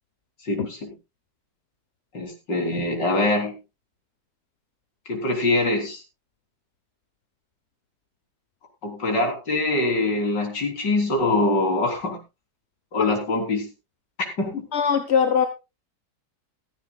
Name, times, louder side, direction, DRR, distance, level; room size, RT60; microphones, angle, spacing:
voice 1, 0.4-0.9 2.1-3.6 5.1-6.0 8.8-12.2 12.9-13.7 14.2-14.6, left 2 dB, 80° left, 2 dB, 4.3 m, -24 dB
voice 2, 14.7-15.5, left 7 dB, 45° left, 8 dB, 1.1 m, -21 dB
16.0 x 14.5 x 2.3 m, 0.27 s
omnidirectional pair, 1.9 m